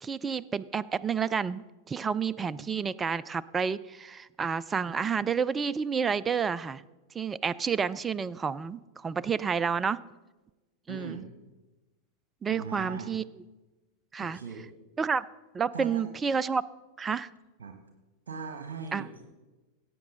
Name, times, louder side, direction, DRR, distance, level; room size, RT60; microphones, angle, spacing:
voice 1, 0.0-6.8 7.1-10.0 10.9-11.2 12.4-13.2 14.1-14.4 15.0-15.2 15.5-16.6 17.0-17.3 18.9-19.0, right 6 dB, 20° right, 18 dB, 0.3 m, -30 dB
voice 2, 10.9-11.3 12.5-13.1 14.2-14.6 15.7-16.1 17.6-17.8 18.3-19.2, right 5 dB, 60° right, 5 dB, 1.1 m, -40 dB
16.5 x 8.3 x 3.9 m, 1.1 s
figure-of-eight pair, 90°, 0 cm